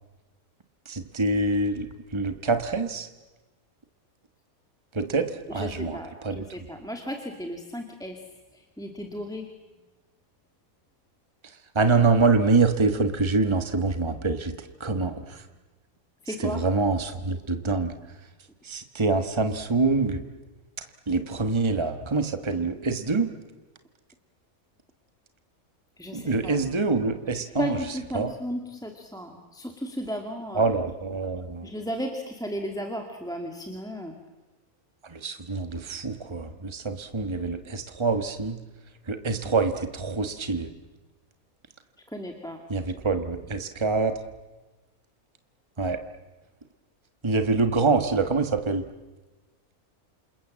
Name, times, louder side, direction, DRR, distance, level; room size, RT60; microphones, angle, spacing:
voice 1, 0.9-1.9 2.1-3.1 4.9-6.5 11.7-15.4 16.3-17.9 18.6-20.2 21.1-23.3 26.1-28.3 30.5-31.7 35.1-38.6 39.1-40.7 42.7-44.2 45.8-46.0 47.2-48.8, right 3 dB, 20° right, 8 dB, 1.5 m, -25 dB
voice 2, 5.5-8.2 8.8-9.5 16.3-16.6 26.0-26.6 27.3-30.7 31.6-34.1 42.1-42.6, equal, 5° left, 3 dB, 2.2 m, -34 dB
28.0 x 28.0 x 7.6 m, 1.2 s
omnidirectional pair, 1.5 m